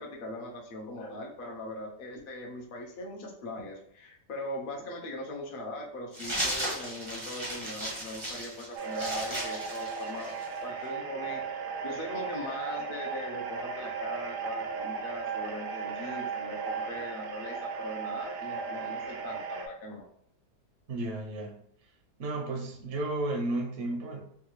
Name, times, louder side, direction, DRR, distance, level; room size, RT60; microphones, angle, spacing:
voice 1, 0.0-10.3 10.6-20.0, left 1 dB, 75° left, -1 dB, 0.4 m, -40 dB
sound 1, 6.1-10.6, right 1 dB, 35° right, 0.5 m, -35 dB
sound 2, 8.8-19.7, right 5 dB, 75° right, 1.2 m, -36 dB
voice 2, 20.9-21.5 22.2-24.2, right 2 dB, 60° right, 1 dB, 0.8 m, -33 dB
3.6 x 2.3 x 3.0 m, 0.70 s
omnidirectional pair, 1.9 m